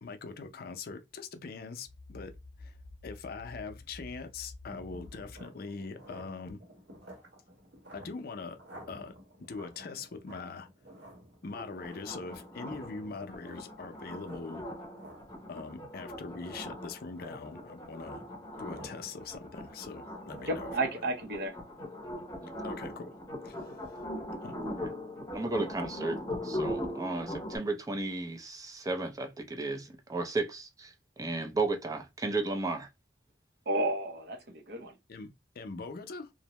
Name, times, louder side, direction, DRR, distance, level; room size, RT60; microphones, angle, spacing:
voice 1, 0.0-2.8 3.0-6.6 7.9-8.6 8.9-10.7 11.4-14.6 15.5-18.2 18.6-21.1 22.6-23.1 23.4-23.8 24.4-24.6 35.1-36.3, left 4 dB, 60° left, 0.5 m, -42 dB
sound 1, 1.9-5.4, left 2 dB, ahead, 1.0 m, -49 dB
sound 2, 4.7-20.7, equal, 80° right, 1.2 m, -54 dB
sound 3, 11.5-27.6, left 1 dB, 20° left, 0.7 m, -41 dB
voice 2, 20.5-21.6 33.7-34.9, right 2 dB, 65° right, 0.7 m, -32 dB
voice 3, 25.3-26.2 26.4-32.9, right 3 dB, 20° right, 0.5 m, -34 dB
2.6 x 2.1 x 2.9 m
head